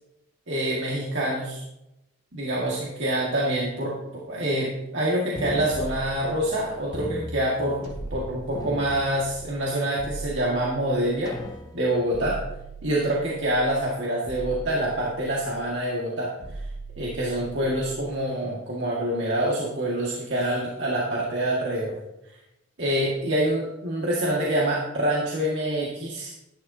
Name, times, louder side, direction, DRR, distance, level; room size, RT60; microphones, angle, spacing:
voice 1, 0.5-1.6 2.3-11.3 11.7-12.4 12.8-16.6 17.0-22.0 22.8-26.3, right 1 dB, 70° right, -5 dB, 1.9 m, -26 dB
sound 1, 5.4-6.6 6.9-8.2 8.5-9.8 10.4-10.5 11.3-12.1, left 1 dB, 20° left, 0.6 m, -38 dB
sound 2, 5.7-7.0 7.8-9.5 10.0-11.4 12.1-13.7 14.3-15.7 16.4-18.0, right 2 dB, 40° right, 3.1 m, -40 dB
12.0 x 11.0 x 2.8 m, 0.89 s
head